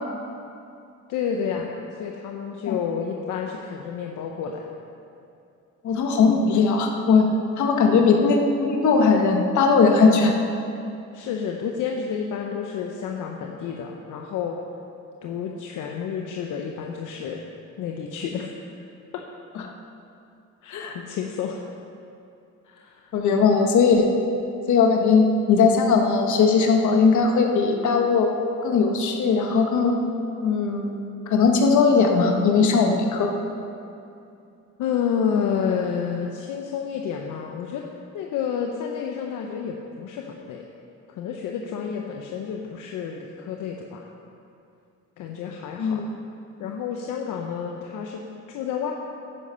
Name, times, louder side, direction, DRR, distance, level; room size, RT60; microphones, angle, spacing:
voice 1, 1.1-1.7 2.0-4.7 7.8-8.2 11.1-14.6 15.2-17.4 17.8-18.6 19.1-19.2 20.6-21.6 22.6-23.1 34.8-37.8 38.1-40.7 41.1-44.1 45.2-46.1 46.6-48.9, left 7 dB, 90° left, 1 dB, 0.9 m, -30 dB
voice 2, 5.8-7.3 7.6-10.3 20.7-20.9 23.1-24.1 24.7-28.3 28.6-30.0 30.4-31.0 31.3-33.3 45.8-46.0, left 5 dB, 75° left, 2 dB, 1.6 m, -19 dB
10.0 x 9.8 x 5.7 m, 2.7 s
cardioid pair, 90°, 30 cm